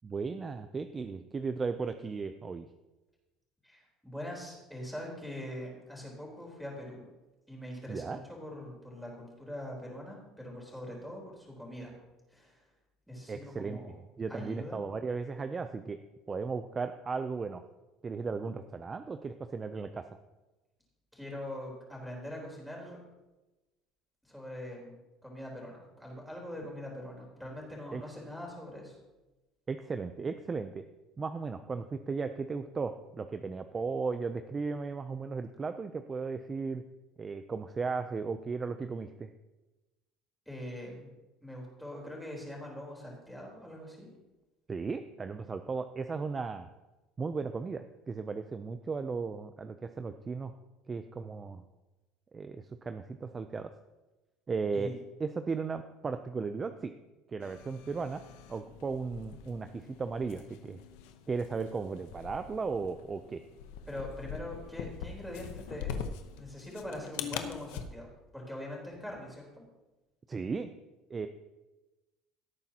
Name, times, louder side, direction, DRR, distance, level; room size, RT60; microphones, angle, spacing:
voice 1, 0.0-2.7 7.9-8.2 13.3-13.8 14.2-16.0 16.3-17.6 18.0-20.2 27.9-28.0 29.7-30.8 31.2-36.8 37.2-39.3 44.7-46.7 47.2-50.5 50.9-51.6 52.3-53.7 54.5-54.9 55.2-56.9 57.3-58.2 58.5-60.8 61.3-63.4 70.3-70.7 71.1-71.3, right 4 dB, 25° right, 9 dB, 0.5 m, -36 dB
voice 2, 3.6-7.0 7.5-11.9 12.3-12.6 13.1-13.9 14.3-14.8 21.1-23.0 24.2-29.0 40.5-41.1 41.4-44.1 54.7-55.0 63.9-66.0 66.4-69.6, left 1 dB, ahead, -2 dB, 3.8 m, -43 dB
sound 1, 57.4-67.8, left 7 dB, 85° left, 0.9 m, -43 dB
17.0 x 8.8 x 2.9 m, 1.1 s
cardioid pair, 130°, 0 cm